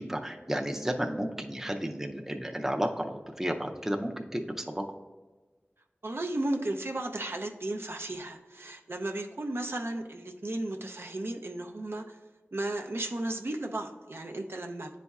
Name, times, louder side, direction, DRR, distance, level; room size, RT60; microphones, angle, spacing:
voice 1, 0.0-4.8, equal, 10° right, 3 dB, 0.5 m, -32 dB
voice 2, 6.0-12.2 12.5-15.0, right 1 dB, 60° right, 3 dB, 0.5 m, -34 dB
9.9 x 4.1 x 2.3 m, 1.3 s
wide cardioid pair, 40°, 4 cm